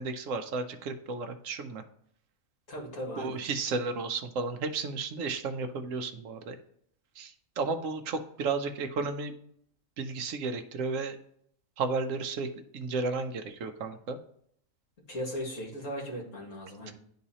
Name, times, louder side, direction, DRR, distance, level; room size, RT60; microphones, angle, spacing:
voice 1, 0.0-1.8 3.2-6.6 7.2-9.3 10.0-11.2 11.8-14.2, right 4 dB, 70° right, 7 dB, 1.1 m, -33 dB
voice 2, 2.7-3.4 15.1-16.9, equal, 65° left, -1 dB, 2.4 m, -37 dB
11.0 x 3.9 x 2.8 m, 0.67 s
omnidirectional pair, 1.4 m